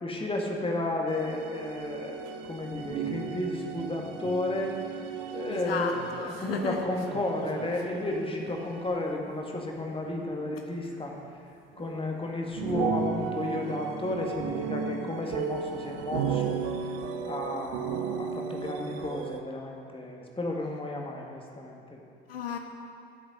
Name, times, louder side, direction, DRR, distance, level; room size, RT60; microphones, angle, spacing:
voice 1, 0.0-4.8 5.3-5.9 6.2-11.1 11.8-16.6 17.3-22.0, left 2 dB, 20° left, 0 dB, 1.8 m, -33 dB
sound 1, 1.1-8.7 10.1-10.7 10.9-11.0 11.7-12.0 12.5-19.4, right 7 dB, 60° right, 0.8 m, -35 dB
voice 2, 5.5-6.8 22.3-22.6, left 6 dB, 80° left, 5 dB, 0.6 m, -33 dB
13.0 x 7.2 x 5.2 m, 2.6 s
figure-of-eight pair, 50°, 29 cm